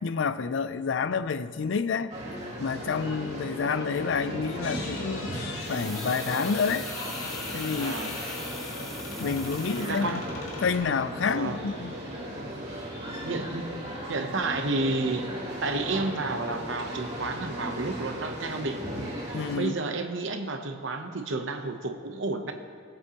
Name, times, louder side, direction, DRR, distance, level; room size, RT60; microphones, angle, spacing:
voice 1, 0.0-2.1 2.6-5.3 5.7-6.9 7.5-7.9 9.2-10.2 10.6-11.9 19.3-19.7, left 5 dB, 65° left, 14 dB, 0.4 m, -28 dB
sound 1, 2.1-19.6, equal, 30° right, 2.3 m, -37 dB
sound 2, 4.6-10.8, left 3 dB, 85° left, 1.9 m, -40 dB
sound 3, 5.6-10.4 10.7-10.8, equal, ahead, 0.5 m, -43 dB
voice 2, 7.8-8.3 9.8-10.2 11.3-11.6 13.2-13.7 14.1-15.3 15.6-18.9 19.5-22.5, right 3 dB, 65° right, 6 dB, 0.8 m, -31 dB
19.5 x 7.7 x 3.0 m, 2.1 s
head